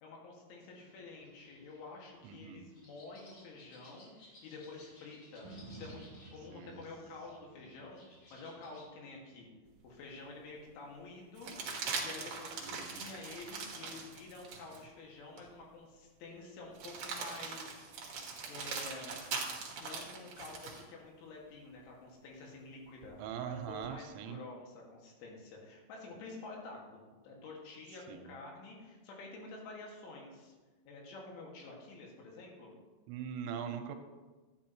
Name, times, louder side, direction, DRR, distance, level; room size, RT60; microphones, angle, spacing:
voice 1, 0.0-6.0 6.3-9.5 9.8-11.5 12.0-17.8 18.5-19.2 19.8-30.5 30.9-32.7, left 3 dB, 80° left, -1 dB, 4.3 m, -49 dB
sound 1, 0.7-8.8, left 2 dB, 60° left, 5.4 m, -61 dB
voice 2, 2.2-2.6 6.5-6.8 12.6-13.0 23.2-24.4 28.1-28.3 33.1-34.0, right 8 dB, 90° right, 6 dB, 3.0 m, -41 dB
sound 2, 5.4-13.6 14.1-14.2, right 2 dB, 20° right, 1.9 m, -57 dB
sound 3, 9.8-9.9 11.4-14.8 15.4-15.5 16.7-20.8 23.0-23.9, right 4 dB, 65° right, 1.7 m, -41 dB
12.0 x 10.5 x 3.0 m, 1.3 s
omnidirectional pair, 5.4 m